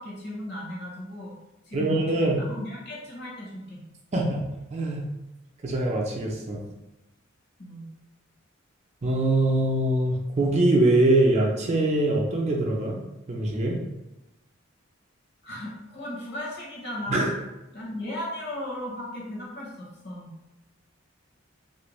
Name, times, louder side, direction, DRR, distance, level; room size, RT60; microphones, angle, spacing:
voice 1, 0.0-1.3 1.7-3.8 7.6-7.9 15.4-17.3 17.7-20.3, left 1 dB, 55° left, -4 dB, 0.9 m, -36 dB
voice 2, 1.7-2.4 4.1-4.4 4.7-5.1 5.6-6.6 9.0-13.0 13.3-13.8 17.1-17.3, right 2 dB, 35° right, -1 dB, 0.4 m, -23 dB
2.5 x 2.1 x 3.0 m, 0.96 s
head